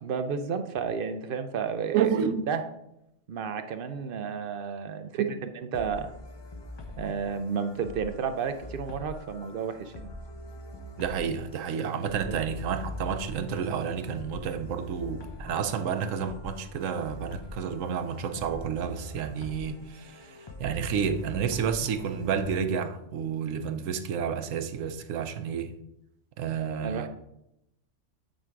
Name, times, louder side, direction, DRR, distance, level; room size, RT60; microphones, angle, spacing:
voice 1, 0.0-2.1 2.5-2.6 3.3-5.2 5.6-6.1 7.0-10.1 11.8-12.4 26.8-27.1, right 6 dB, 55° right, 0.6 m, -32 dB
voice 2, 1.9-2.5 5.1-5.3 11.0-25.7 26.4-27.1, right 7 dB, 85° right, 1.0 m, -30 dB
sound 1, 5.7-22.6, left 2 dB, 30° left, 0.5 m, -43 dB
9.1 x 3.7 x 4.5 m
omnidirectional pair, 1.3 m